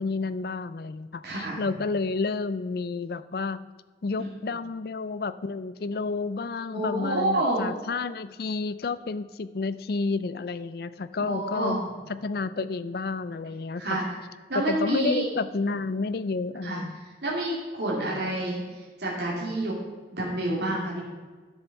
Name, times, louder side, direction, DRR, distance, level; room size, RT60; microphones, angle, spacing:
voice 1, 0.0-3.6 4.0-11.8 12.1-14.0 14.5-17.0, left 4 dB, 60° left, 14 dB, 0.4 m, -30 dB
voice 2, 1.2-1.6 6.7-7.6 11.3-11.8 13.8-14.0 14.5-15.3 16.6-16.8 17.2-18.6 19.0-19.8 20.1-21.0, right 1 dB, 70° right, -5 dB, 2.4 m, -28 dB
11.0 x 6.9 x 5.9 m, 1.4 s
head